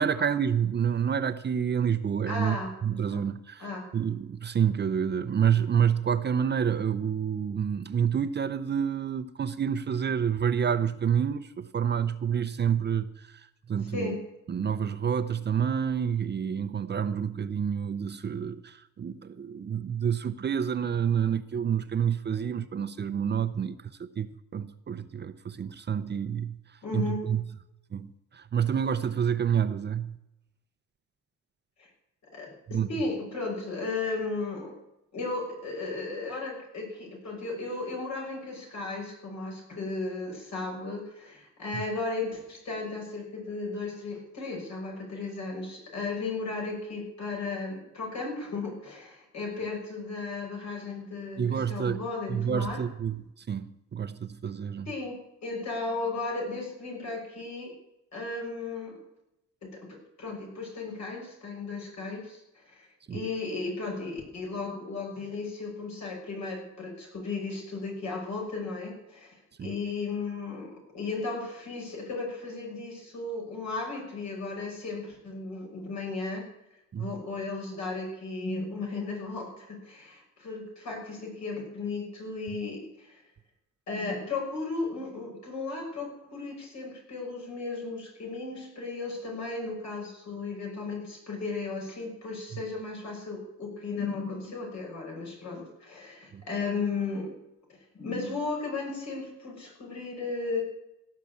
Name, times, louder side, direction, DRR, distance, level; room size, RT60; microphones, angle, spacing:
voice 1, 0.0-2.6 2.8-3.6 3.9-14.2 14.5-26.6 26.9-27.5 27.9-30.1 32.7-32.9 41.7-41.8 51.4-52.0 52.3-54.9 63.1-63.2 69.6-69.7 76.9-77.1 96.3-96.4, right 8 dB, 35° right, 0.7 m, -28 dB
voice 2, 2.3-2.7 3.1-3.2 3.6-3.9 13.8-14.2 26.8-27.2 31.8-31.9 32.3-34.8 35.1-52.8 54.8-57.7 58.1-59.0 59.6-76.5 77.0-83.2 83.9-97.3 97.7-100.6, left 3 dB, 65° left, 6.6 m, -35 dB
16.5 x 5.8 x 8.4 m
cardioid pair, 90°, 30 cm